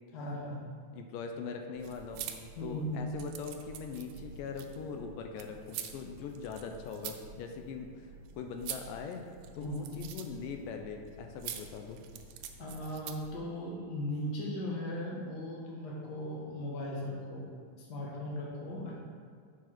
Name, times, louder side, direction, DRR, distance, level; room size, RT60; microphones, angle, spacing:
voice 1, 0.1-0.6 2.5-3.1 9.5-10.0 12.6-17.5 17.8-18.9, left 1 dB, 50° left, -4 dB, 1.3 m, -38 dB
voice 2, 0.9-2.3 2.6-8.1 8.3-9.2 9.6-12.0, left 5 dB, 85° left, 4 dB, 2.2 m, -41 dB
sound 1, 1.7-13.4, right 8 dB, 80° right, 1.9 m, -46 dB
6.9 x 4.8 x 5.9 m, 2.1 s
omnidirectional pair, 3.9 m